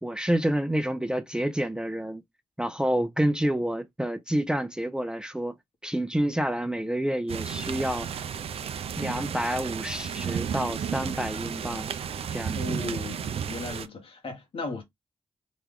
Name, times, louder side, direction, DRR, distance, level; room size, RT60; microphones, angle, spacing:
voice 1, 0.0-2.2 2.6-5.5 5.8-8.1 9.0-11.9 12.3-12.8, right 1 dB, 10° right, 0.5 m, -28 dB
sound 1, 7.3-13.9, right 8 dB, 75° right, 0.4 m, -33 dB
voice 2, 12.5-14.8, left 2 dB, 70° left, 1.3 m, -36 dB
3.0 x 2.3 x 3.5 m
cardioid pair, 55°, 10 cm